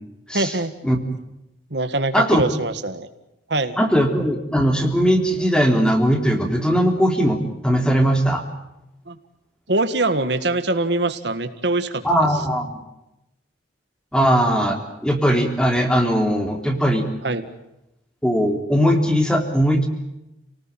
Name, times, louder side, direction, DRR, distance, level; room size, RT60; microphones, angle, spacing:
voice 1, 0.3-0.7 1.7-3.1 3.5-3.8 9.1-9.2 9.7-12.0 17.2-17.5, right 2 dB, 60° right, 9 dB, 1.8 m, -23 dB
voice 2, 2.1-2.4 3.8-8.4 12.0-12.7 14.1-17.1 18.2-19.9, equal, 5° left, 4 dB, 3.4 m, -19 dB
29.5 x 19.0 x 8.9 m, 0.92 s
head